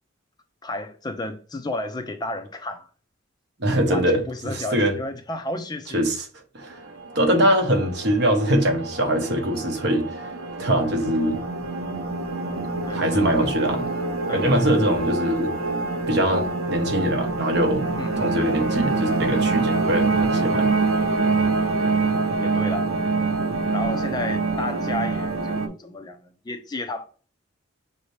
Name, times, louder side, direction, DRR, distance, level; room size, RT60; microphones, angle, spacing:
voice 1, 0.6-2.9 3.8-6.1 12.9-13.5 14.3-14.7 18.0-18.4 22.4-22.9 23.7-27.1, left 2 dB, 20° left, 0.3 m, -32 dB
voice 2, 3.6-4.9 5.9-6.2 6.5-6.8 7.1-10.3 10.6-11.4 12.9-13.9 14.3-15.5 16.1-17.8 18.2-20.7, equal, 55° right, 0.9 m, -22 dB
sound 1, 6.6-25.7, right 3 dB, 80° right, 0.6 m, -25 dB
5.7 x 2.7 x 3.2 m
head